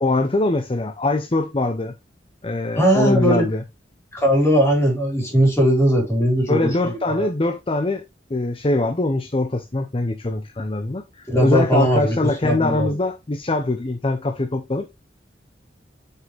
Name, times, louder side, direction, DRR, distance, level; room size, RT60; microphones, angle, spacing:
voice 1, 0.0-1.9 2.4-3.6 6.5-8.0 8.3-14.9, left 2 dB, 30° left, 0.7 m, -23 dB
voice 2, 2.8-3.4 4.1-7.3 11.3-12.9, equal, 15° left, 4.3 m, -19 dB
7.7 x 5.6 x 3.3 m
head